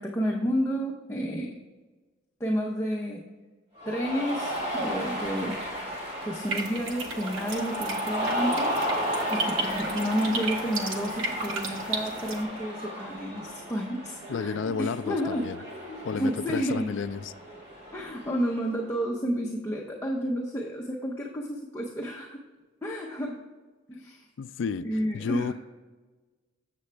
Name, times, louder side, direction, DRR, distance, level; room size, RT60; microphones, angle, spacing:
voice 1, 0.0-1.6 2.4-3.2 3.9-5.6 6.2-8.8 9.3-15.5 15.7-16.9 17.9-22.4 22.8-23.4 23.9-24.3 24.8-25.5, equal, 15° left, -2 dB, 0.6 m, -31 dB
Cheering, 3.8-18.6, equal, 25° right, 2.2 m, -34 dB
sound 1, 6.4-12.4, right 3 dB, 75° right, 1.0 m, -35 dB
voice 2, 14.3-15.6 16.0-17.3 24.4-25.5, left 6 dB, 65° left, 14 dB, 0.3 m, -32 dB
7.5 x 7.0 x 3.3 m, 1.3 s
head